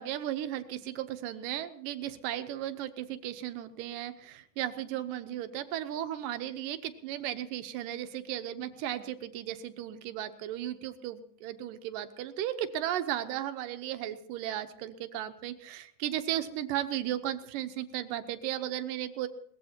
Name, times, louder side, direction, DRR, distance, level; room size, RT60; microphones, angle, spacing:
voice 1, 0.0-19.3, right 12 dB, 80° right, 10 dB, 2.5 m, -35 dB
22.0 x 19.0 x 2.9 m, 0.64 s
omnidirectional pair, 3.9 m